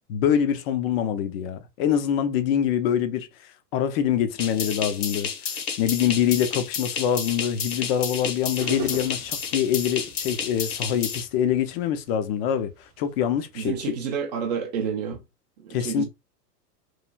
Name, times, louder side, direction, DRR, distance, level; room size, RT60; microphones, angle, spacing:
voice 1, 0.1-3.3 3.7-5.3 5.8-13.7 15.7-16.0, left 9 dB, 40° left, 0.5 m, -24 dB
sound 1, 4.4-11.2, left 6 dB, 65° left, 1.0 m, -31 dB
sound 2, 8.6-14.1, right 5 dB, 50° right, 0.7 m, -41 dB
voice 2, 13.5-15.2 15.6-16.0, right 6 dB, 30° right, 0.3 m, -29 dB
3.1 x 2.4 x 2.2 m
hypercardioid pair, 110°, 49 cm